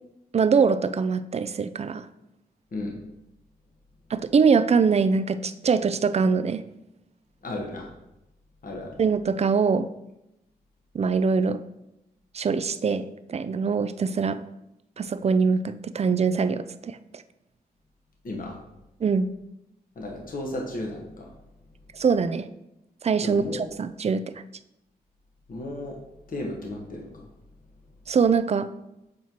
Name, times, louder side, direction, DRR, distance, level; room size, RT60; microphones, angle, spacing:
voice 1, 0.3-2.1 4.1-6.6 9.0-9.9 10.9-11.6 12.3-14.4 15.0-17.0 19.0-19.3 21.9-22.5 23.0-24.2 28.1-28.7, right 5 dB, 40° right, 13 dB, 0.4 m, -23 dB
voice 2, 7.4-7.9 8.6-8.9 18.2-18.6 20.0-21.3 23.2-23.7 25.5-26.0 26.3-27.3, left 1 dB, 60° left, 0 dB, 1.1 m, -34 dB
7.4 x 4.5 x 2.9 m, 0.88 s
cardioid pair, 60°, 16 cm